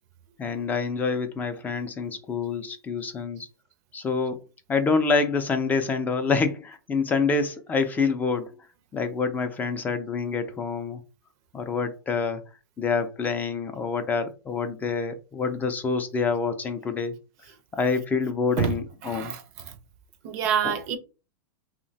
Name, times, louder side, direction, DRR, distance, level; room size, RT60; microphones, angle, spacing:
voice 1, 0.4-3.5 3.9-4.4 4.7-8.5 8.9-11.0 11.5-12.4 12.8-17.1 17.7-19.3 20.6-20.7, left 4 dB, 15° left, 0.3 m, -27 dB
voice 2, 18.6-19.7 20.2-21.0, right 8 dB, 50° right, 0.5 m, -28 dB
3.0 x 2.1 x 2.6 m
hypercardioid pair, 130°, 11 cm